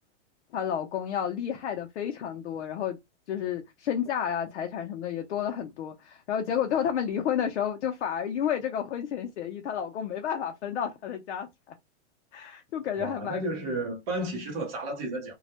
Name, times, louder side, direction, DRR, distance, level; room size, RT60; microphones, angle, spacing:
voice 1, 0.5-3.0 3.3-11.7 12.3-13.4, left 8 dB, 75° left, 0.6 m, -31 dB
voice 2, 13.0-15.4, right 1 dB, 25° right, 0.7 m, -32 dB
2.3 x 2.0 x 2.8 m
supercardioid pair, 165°, 34 cm